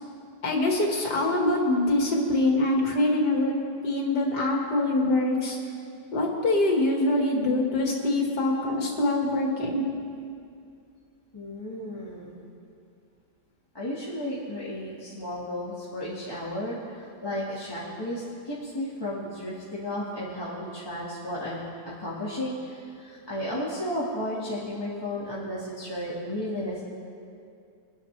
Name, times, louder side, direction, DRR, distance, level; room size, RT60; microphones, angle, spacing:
voice 1, 0.4-3.5 3.8-5.6 6.1-9.9, left 2 dB, 80° left, -1 dB, 2.4 m, -24 dB
voice 2, 7.3-7.9 11.3-12.4 13.7-26.8, left 1 dB, 15° left, -9 dB, 1.7 m, -34 dB
22.5 x 10.5 x 3.3 m, 2.4 s
omnidirectional pair, 1.7 m